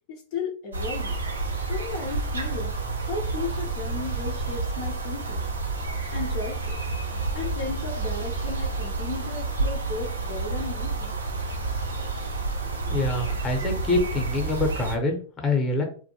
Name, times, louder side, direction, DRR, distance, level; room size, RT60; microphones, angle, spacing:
voice 1, 0.1-1.2 1.7-2.7 3.0-5.4 6.1-6.8 7.3-11.2, left 4 dB, 55° left, -1 dB, 0.5 m, -35 dB
sound 1, 0.7-15.0, right 3 dB, 85° right, 0.5 m, -29 dB
voice 2, 12.6-15.8, left 2 dB, 25° left, 3 dB, 0.8 m, -26 dB
2.5 x 2.2 x 2.8 m, 0.41 s
hypercardioid pair, 100°, 0 cm